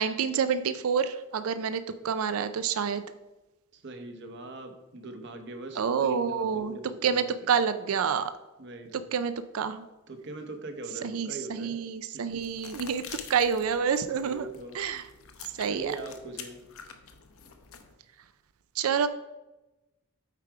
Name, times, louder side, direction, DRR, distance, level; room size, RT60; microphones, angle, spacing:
voice 1, 0.0-3.0 5.8-6.7 7.0-8.3 9.1-9.8 11.0-13.0 13.3-14.5 14.7-15.0 15.6-16.0 18.8-19.1, right 6 dB, 75° right, 12 dB, 0.4 m, -28 dB
voice 2, 3.7-7.2 8.6-9.1 10.1-11.8 12.1-12.4 14.1-14.8 15.7-16.6, right 2 dB, 55° right, 6 dB, 1.0 m, -41 dB
sound 1, 12.3-17.9, left 7 dB, 70° left, 0.8 m, -47 dB
8.3 x 4.9 x 4.6 m, 1.0 s
head